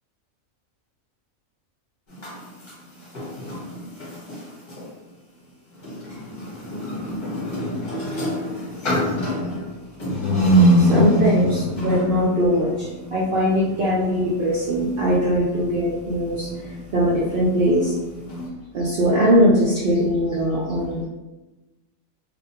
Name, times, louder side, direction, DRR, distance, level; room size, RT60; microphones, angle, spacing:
sound 1, 2.1-4.9 5.7-18.5, equal, 40° left, 1.0 m, -25 dB
voice 1, 10.8-16.5 16.9-17.9 18.7-21.1, equal, 60° right, -6 dB, 0.6 m, -20 dB
2.4 x 2.2 x 2.7 m, 1.1 s
omnidirectional pair, 1.4 m